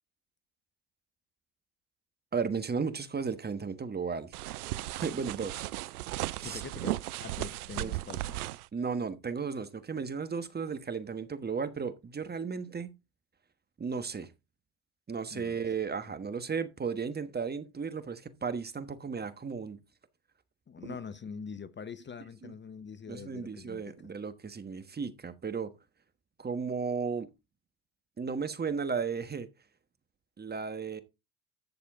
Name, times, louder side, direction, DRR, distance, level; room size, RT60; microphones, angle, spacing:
voice 1, 2.3-4.3 5.0-5.7 6.4-6.6 7.8-7.9 8.7-12.9 13.8-14.3 15.1-19.8 20.8-21.0 22.4-22.5 23.1-25.7 26.4-27.3 28.2-29.5 30.4-31.0, right 5 dB, 20° right, 1.3 m, -34 dB
sound 1, 4.3-8.7, right 17 dB, 90° right, 0.5 m, -36 dB
voice 2, 6.4-8.6 15.3-15.7 20.7-23.9, left 6 dB, 25° left, 0.9 m, -44 dB
12.0 x 6.7 x 3.6 m
hypercardioid pair, 75°, 43 cm